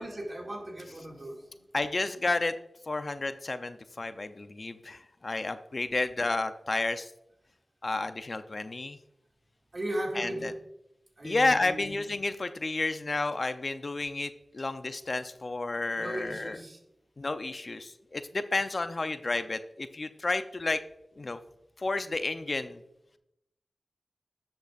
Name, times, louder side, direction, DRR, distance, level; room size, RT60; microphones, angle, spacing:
voice 1, 0.0-1.6 9.7-10.6 11.2-11.8 15.9-16.8, right 1 dB, 45° right, 0 dB, 2.1 m, -37 dB
voice 2, 1.7-2.5 2.9-7.1 7.8-9.0 10.2-10.5 11.2-16.6 17.2-20.8 21.2-21.4 21.8-22.8, left 2 dB, 50° left, 10 dB, 0.5 m, -31 dB
10.5 x 7.8 x 2.5 m, 0.82 s
cardioid pair, 45°, 0 cm